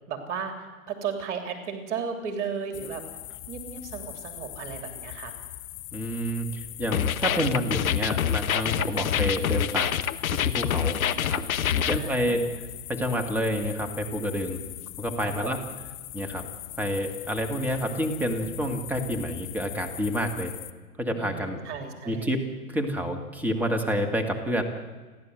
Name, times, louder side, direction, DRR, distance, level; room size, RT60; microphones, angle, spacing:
voice 1, 0.1-3.0 3.5-5.3 8.7-9.0 10.9-12.4 15.2-15.7 21.1-22.3, right 6 dB, 50° right, 6 dB, 3.1 m, -35 dB
sound 1, 2.7-20.7, left 16 dB, 15° left, 0.5 m, -41 dB
voice 2, 5.9-9.9 10.3-11.4 11.8-12.4 12.9-14.6 15.0-15.6 16.1-16.4 16.8-20.5 21.0-21.6 22.1-22.4 22.7-24.6, equal, 5° right, 4 dB, 2.2 m, -29 dB
sound 2, 6.9-12.0, left 9 dB, 70° left, 1.2 m, -26 dB
30.0 x 11.0 x 7.9 m, 1.4 s
hypercardioid pair, 125°, 44 cm